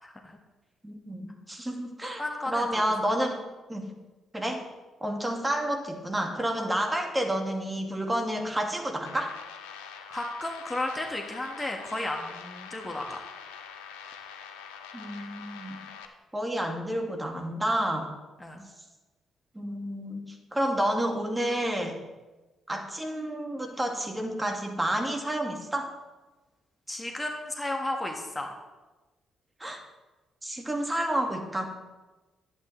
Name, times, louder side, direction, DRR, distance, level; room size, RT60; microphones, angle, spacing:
voice 1, 0.0-0.4 2.2-2.7 6.6-6.7 10.1-13.2 18.4-18.7 26.9-28.6, left 1 dB, 15° left, 2 dB, 1.6 m, -33 dB
voice 2, 0.8-2.2 2.5-3.4 3.7-3.9 4.3-4.7 5.0-9.4 14.9-15.8 16.3-18.1 19.6-22.0 22.7-25.9 29.6-29.8 30.4-31.7, right 1 dB, 15° right, 3 dB, 1.9 m, -30 dB
sound 1, 9.1-16.1, left 7 dB, 80° left, 0.7 m, -44 dB
11.0 x 8.7 x 3.2 m, 1.2 s
hypercardioid pair, 45°, 0 cm